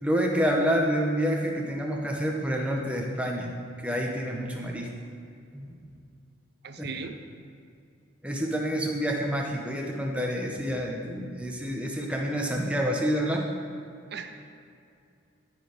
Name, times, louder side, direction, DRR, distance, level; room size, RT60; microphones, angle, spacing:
voice 1, 0.0-4.9 5.5-5.7 6.8-6.9 8.2-13.5, equal, 5° right, 0 dB, 0.9 m, -28 dB
voice 2, 6.6-7.2 14.1-14.4, right 5 dB, 55° right, 7 dB, 0.5 m, -37 dB
13.0 x 4.6 x 5.0 m, 2.5 s
head